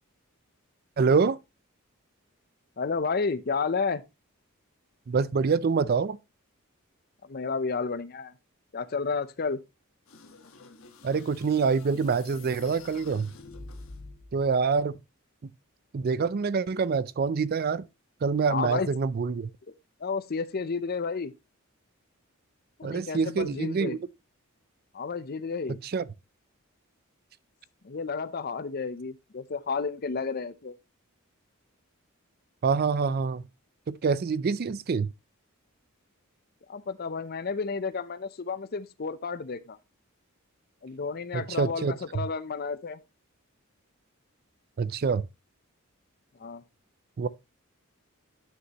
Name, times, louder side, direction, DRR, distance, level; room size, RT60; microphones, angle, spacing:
voice 1, 1.0-1.4 5.1-6.2 11.0-13.3 14.3-15.0 15.9-17.8 18.2-19.5 22.8-24.0 25.9-26.0 32.6-33.4 33.9-35.1 41.3-41.9 44.8-45.3 47.2-47.3, right 5 dB, 45° right, 0.4 m, -26 dB
voice 2, 2.8-4.0 7.2-8.3 8.7-9.6 18.5-18.9 20.0-21.3 22.8-24.0 24.9-25.8 27.8-30.7 36.7-39.8 40.8-43.0 46.4-46.6, left 4 dB, 45° left, 0.6 m, -31 dB
sound 1, 10.1-14.4, left 3 dB, 70° left, 1.3 m, -47 dB
9.8 x 6.3 x 2.9 m
head